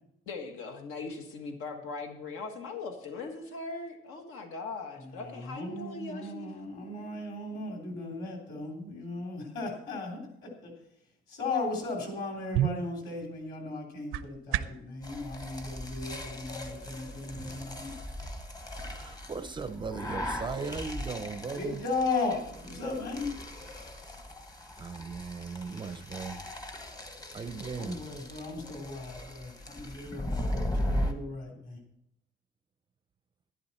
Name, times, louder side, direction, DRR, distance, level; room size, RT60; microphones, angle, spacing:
voice 1, 0.3-6.5, left 3 dB, 85° left, 4 dB, 1.6 m, -40 dB
voice 2, 5.0-10.7 11.3-17.9 21.5-23.3 27.8-31.8, left 3 dB, 50° left, 1 dB, 3.2 m, -36 dB
sound 1, 12.3-14.9, right 12 dB, 90° right, 0.6 m, -33 dB
sound 2, 15.0-31.1, left 1 dB, 15° left, 0.9 m, -38 dB
voice 3, 18.8-21.8 24.8-26.4 27.3-28.0, right 5 dB, 20° right, 9 dB, 0.5 m, -38 dB
12.0 x 11.0 x 4.2 m, 0.79 s
cardioid pair, 170°, 21 cm